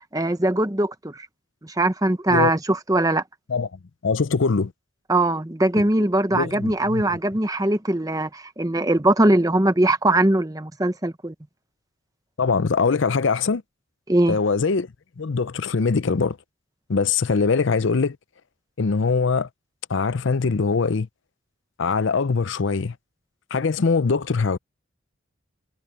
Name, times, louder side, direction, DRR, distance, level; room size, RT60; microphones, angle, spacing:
voice 1, 0.1-1.3 1.6-3.2 5.1-11.3 14.1-14.4, right 1 dB, 15° right, 0.9 m, -21 dB
voice 2, 3.5-4.7 6.3-7.0 12.4-13.6 14.3-14.9 15.2-16.4 16.9-18.2 18.8-19.5 19.9-21.1 21.8-22.9 23.5-24.6, left 4 dB, 65° left, 0.6 m, -22 dB
head